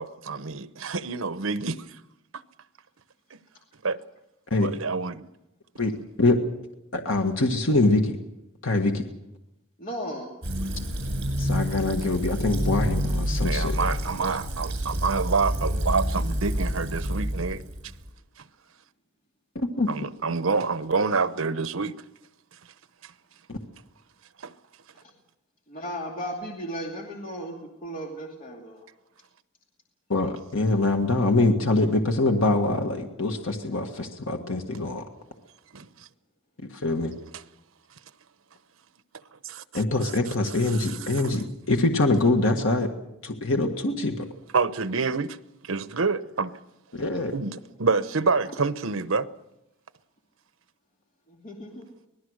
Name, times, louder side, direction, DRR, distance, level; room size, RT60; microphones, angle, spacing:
voice 1, 0.0-1.9 2.3-2.4 3.3-3.4 3.8-4.0 4.6-5.3 13.4-17.6 19.9-21.9 23.0-23.1 24.4-24.5 35.7-36.1 39.3-39.8 40.7-41.4 44.5-45.4 45.6-46.6 47.3-49.3, right 4 dB, 80° right, 0.9 m, -27 dB
voice 2, 6.9-8.2 8.6-9.1 11.4-13.8 19.6-19.9 23.5-23.6 30.1-35.0 36.7-37.1 39.7-42.9 43.2-44.3 46.9-47.3, left 2 dB, 70° left, 1.7 m, -24 dB
voice 3, 9.8-10.3 25.7-27.6 27.8-28.9 51.3-51.9, equal, 40° left, 2.5 m, -35 dB
Fill (with liquid), 10.4-18.1, equal, 60° right, 7.4 m, -28 dB
25.5 x 19.5 x 6.5 m
head